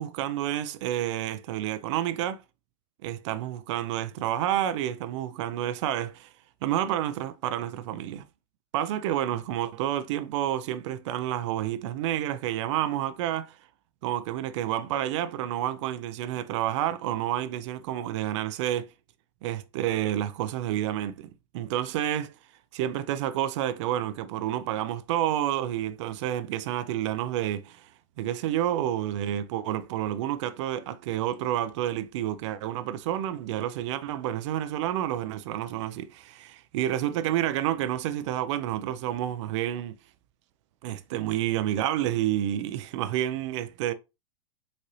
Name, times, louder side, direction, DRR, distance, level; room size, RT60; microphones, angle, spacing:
voice 1, 0.0-2.4 3.0-6.3 6.6-8.2 8.7-13.6 14.0-18.9 19.4-21.3 21.5-22.3 22.7-27.9 28.2-39.9 40.8-43.9, right 12 dB, 60° right, 0.4 m, -29 dB
3.9 x 2.6 x 3.0 m
hypercardioid pair, 125°, 17 cm